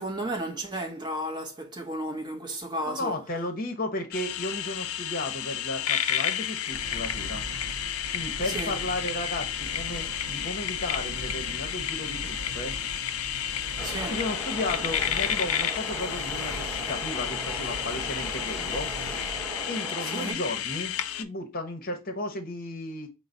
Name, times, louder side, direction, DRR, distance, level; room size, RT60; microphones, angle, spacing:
voice 1, 0.0-3.2 8.4-8.8 13.8-14.2 20.1-20.4, right 1 dB, 20° right, 0.7 m, -33 dB
voice 2, 2.8-7.4 8.1-12.7 14.1-18.9 19.6-23.1, left 1 dB, 40° left, 0.8 m, -34 dB
sound 1, 4.1-21.2, left 10 dB, 70° left, 0.4 m, -31 dB
sound 2, 6.7-19.7, right 1 dB, 75° right, 0.5 m, -41 dB
sound 3, 13.8-20.3, equal, 5° left, 1.1 m, -38 dB
4.6 x 2.0 x 3.8 m
head